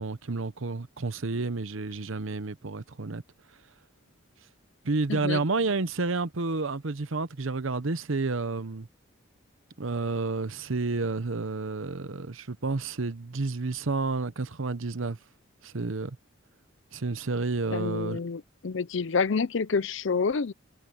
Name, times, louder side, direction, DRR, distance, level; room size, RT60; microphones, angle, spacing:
voice 1, 0.0-3.2 4.8-8.9 9.8-15.2 15.6-16.2 16.9-18.2, right 3 dB, 75° right, 0.9 m, -30 dB
voice 2, 5.1-5.4 17.7-20.5, left 5 dB, 65° left, 0.6 m, -28 dB
head